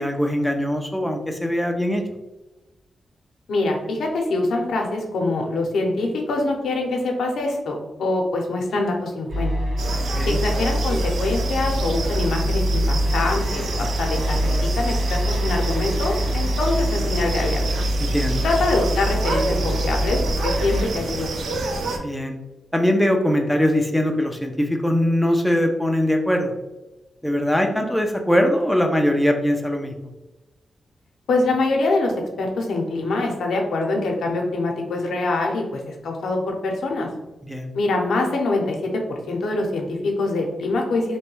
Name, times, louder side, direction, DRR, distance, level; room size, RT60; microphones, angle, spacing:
voice 1, 0.0-2.0 9.9-10.4 18.0-18.4 22.0-22.3 22.7-26.5 27.2-29.9 37.5-37.7, equal, ahead, 3 dB, 0.4 m, -21 dB
voice 2, 3.5-9.5 10.3-17.6 18.4-21.3 31.3-32.1 32.4-37.1 37.7-41.2, left 2 dB, 85° left, 1 dB, 0.6 m, -24 dB
sound 1, 9.3-20.8, equal, 60° right, 1.5 m, -24 dB
sound 2, 9.8-22.0, right 3 dB, 85° right, 0.4 m, -29 dB
3.1 x 2.2 x 3.0 m, 1.0 s
cardioid pair, 95°, 0 cm